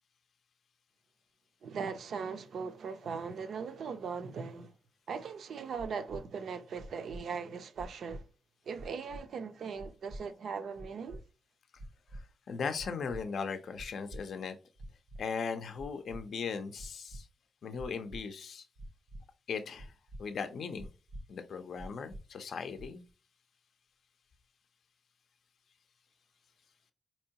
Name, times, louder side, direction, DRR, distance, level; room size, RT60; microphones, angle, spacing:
voice 1, 1.6-4.7 5.1-8.2 8.7-11.2, right 5 dB, 70° right, 0.5 m, -39 dB
sound 1, 5.8-6.2 6.8-7.2 7.8-8.2 8.8-9.2 9.8-10.2 10.8-11.2 11.8-12.2 12.8-13.2 13.8-14.2 14.8-15.2 15.8-16.2 16.8-17.2 17.8-18.2 18.8-19.2 19.8-20.2 20.8-21.2 21.8-22.2 22.8-23.1, right 1 dB, 85° right, 0.9 m, -45 dB
voice 2, 12.1-14.6 15.2-17.3 17.6-18.7 19.5-19.9 20.2-20.9 21.3-23.0, left 5 dB, 65° left, 0.4 m, -38 dB
4.4 x 2.9 x 2.8 m
cardioid pair, 115°, 0 cm